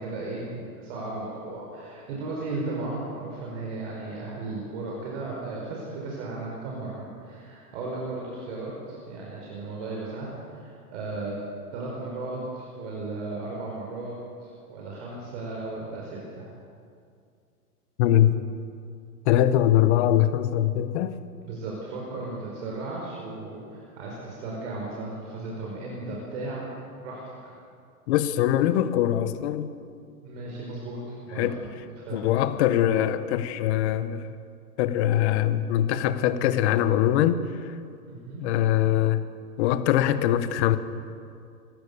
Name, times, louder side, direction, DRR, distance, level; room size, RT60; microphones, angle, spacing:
voice 1, 0.0-11.3 11.7-14.1 14.4-16.5 21.4-27.5 30.2-31.6 32.0-32.2 38.1-38.4, right 2 dB, 50° right, -3 dB, 5.4 m, -35 dB
voice 2, 18.0-18.4 19.2-21.2 28.1-29.7 31.4-31.6 32.1-34.3 34.8-37.4 38.4-39.2 39.6-40.8, left 12 dB, 45° left, 12 dB, 1.4 m, -22 dB
25.5 x 15.5 x 7.0 m, 2.4 s
hypercardioid pair, 130°, 45 cm